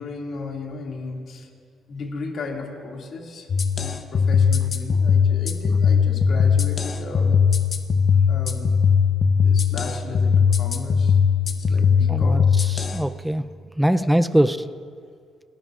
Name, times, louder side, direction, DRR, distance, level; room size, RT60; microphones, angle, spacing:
voice 1, 0.0-1.5 1.9-3.5 3.7-7.4 8.3-8.7 9.4-11.2 11.5-12.4 14.0-14.1, left 3 dB, 60° left, 0 dB, 2.3 m, -35 dB
beats and cymbals, 3.5-13.0, left 6 dB, 45° left, 0.8 m, -19 dB
voice 2, 12.1-13.4 13.8-14.6, equal, 5° right, 11 dB, 0.4 m, -22 dB
28.5 x 12.5 x 2.5 m, 2.1 s
cardioid pair, 90°, 0 cm